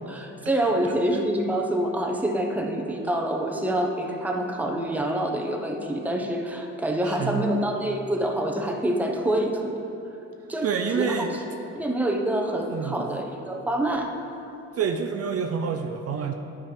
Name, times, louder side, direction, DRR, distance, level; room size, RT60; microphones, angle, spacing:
voice 1, 0.1-9.8 10.5-11.3 11.8-14.1, right 1 dB, 5° right, 2 dB, 0.9 m, -26 dB
voice 2, 7.0-7.5 10.6-11.3 12.7-13.1 14.8-16.3, right 6 dB, 55° right, 5 dB, 0.6 m, -28 dB
10.0 x 5.0 x 5.0 m, 2.9 s
cardioid pair, 90°, 30 cm